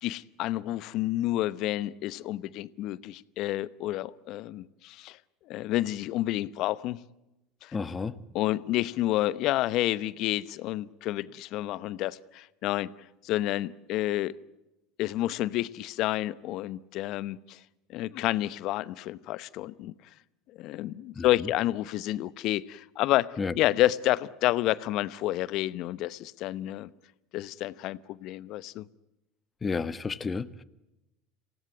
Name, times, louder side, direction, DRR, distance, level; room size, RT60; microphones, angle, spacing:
voice 1, 0.0-5.2 5.5-7.0 7.6-7.8 8.3-12.9 13.2-14.3 15.0-17.6 17.9-19.9 20.6-26.9 27.3-28.8, left 15 dB, 55° left, 18 dB, 0.9 m, -29 dB
voice 2, 7.7-8.1 21.1-21.5 23.4-23.5 29.6-30.6, left 4 dB, 25° left, 14 dB, 1.3 m, -32 dB
27.5 x 17.5 x 9.4 m, 0.95 s
hypercardioid pair, 75°, 0 cm